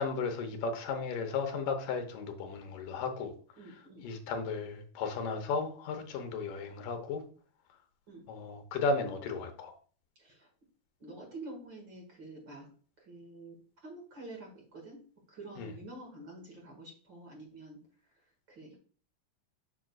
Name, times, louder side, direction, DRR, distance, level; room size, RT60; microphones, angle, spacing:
voice 1, 0.0-3.3 4.0-7.2 8.3-9.7 15.6-15.7, left 4 dB, 80° left, 5 dB, 2.5 m, -34 dB
voice 2, 3.6-4.1 8.1-8.3 10.2-10.5 11.0-12.7 13.0-13.6 13.8-15.0 15.3-17.8 18.1-18.8, right 2 dB, 45° right, 0 dB, 2.0 m, -48 dB
6.9 x 6.2 x 2.3 m, 0.42 s
omnidirectional pair, 3.8 m